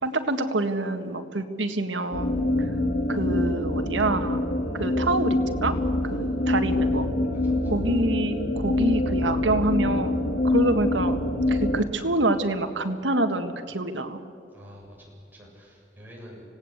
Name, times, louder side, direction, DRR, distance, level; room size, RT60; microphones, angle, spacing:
voice 1, 0.0-2.3 2.6-2.7 3.1-4.4 4.7-5.7 6.0-7.1 7.7-11.2 11.5-14.2, right 2 dB, 85° right, 7 dB, 1.8 m, -26 dB
sound 1, 2.1-11.8, left 1 dB, 60° left, 2.0 m, -25 dB
voice 2, 7.3-7.8 14.5-16.4, equal, 10° right, -3 dB, 7.2 m, -48 dB
25.5 x 18.0 x 8.2 m, 2.7 s
head